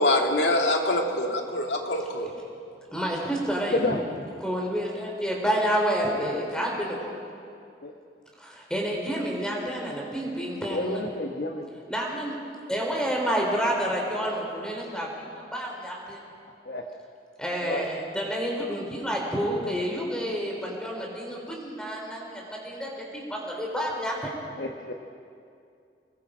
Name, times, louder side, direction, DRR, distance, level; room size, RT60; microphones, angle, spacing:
voice 1, 0.0-2.3, left 1 dB, 85° left, 2 dB, 2.3 m, -24 dB
voice 2, 2.9-4.0 4.4-7.1 8.4-11.0 11.9-12.3 12.7-16.2 17.4-24.3, equal, 5° left, -2 dB, 3.7 m, -29 dB
voice 3, 3.7-4.0 7.8-7.9 10.7-11.7 16.6-16.9 17.6-17.8 24.6-24.9, left 2 dB, 60° left, 3 dB, 1.1 m, -30 dB
26.0 x 21.0 x 5.0 m, 2.4 s
head